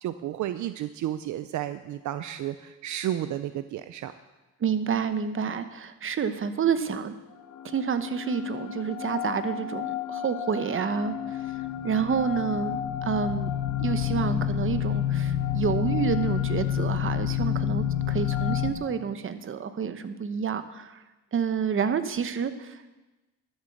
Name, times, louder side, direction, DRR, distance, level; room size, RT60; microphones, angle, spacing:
voice 1, 0.0-4.1, right 12 dB, 70° right, 11 dB, 0.6 m, -32 dB
voice 2, 4.6-7.2 7.6-11.4 11.8-13.5 13.8-21.0 21.3-22.8, right 6 dB, 45° right, 10 dB, 1.0 m, -29 dB
sound 1, 7.4-18.7, left 10 dB, 65° left, 1.3 m, -29 dB
12.5 x 7.4 x 7.8 m, 1.1 s
cardioid pair, 90°, 30 cm